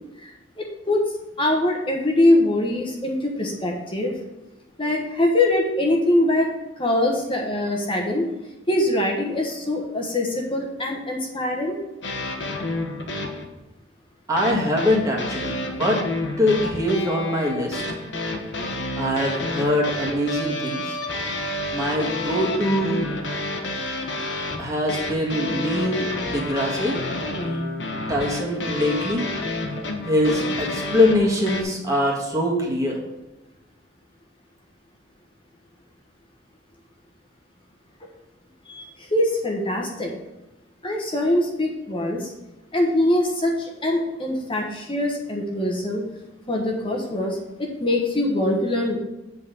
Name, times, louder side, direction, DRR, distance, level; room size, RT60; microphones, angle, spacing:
voice 1, 0.6-1.0 1.4-4.1 4.8-6.5 6.8-8.3 8.7-11.8 38.6-40.2 40.8-42.3 42.7-46.0 46.5-49.0, left 1 dB, 30° left, 0 dB, 1.2 m, -23 dB
sound 1, 12.0-13.5 14.4-31.6, left 2 dB, 75° left, 1.2 m, -29 dB
voice 2, 14.3-16.0 16.4-17.8 19.0-21.0 21.7-23.0 24.6-27.0 28.1-29.2 30.0-33.0, left 1 dB, 20° right, -3 dB, 1.7 m, -23 dB
8.2 x 4.1 x 6.8 m, 1.0 s
head